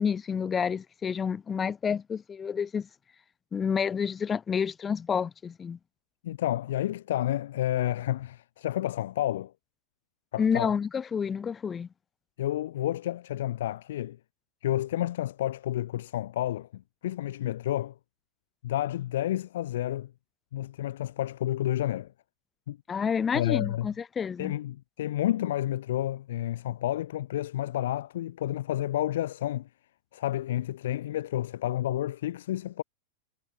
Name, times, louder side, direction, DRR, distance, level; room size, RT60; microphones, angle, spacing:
voice 1, 0.0-2.9 3.5-5.8 10.4-11.9 22.9-24.5, left 6 dB, 20° left, 7.2 m, -29 dB
voice 2, 6.2-9.5 10.3-10.7 12.4-14.2 14.6-17.9 18.6-20.1 20.5-22.1 22.7-22.8 23.3-23.9 24.4-29.7 30.1-32.8, left 13 dB, 60° left, 6.2 m, -30 dB
figure-of-eight pair, 90°, 0 cm